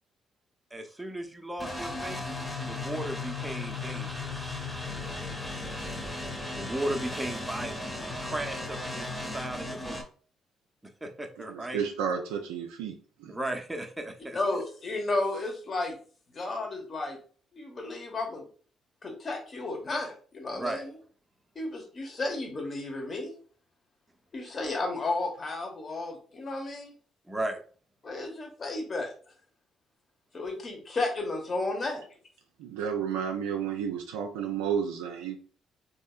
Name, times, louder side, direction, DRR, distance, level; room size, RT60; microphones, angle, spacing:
voice 1, 0.7-2.2 2.6-4.6 6.5-10.0 10.8-11.8 13.3-14.4 20.5-20.8 27.3-27.6, right 1 dB, 10° right, 4 dB, 0.7 m, -36 dB
sound 1, 1.6-10.0, left 2 dB, 15° left, 1.1 m, -36 dB
voice 2, 11.5-13.4 32.6-35.4, right 7 dB, 85° right, 3 dB, 0.3 m, -32 dB
voice 3, 14.3-16.0 16.3-17.2 17.5-18.5 19.0-20.9 21.5-23.3 24.3-26.9 28.0-29.1 30.3-32.0, left 2 dB, 40° left, 2 dB, 1.1 m, -33 dB
3.5 x 2.7 x 2.4 m, 0.42 s
hypercardioid pair, 50°, 0 cm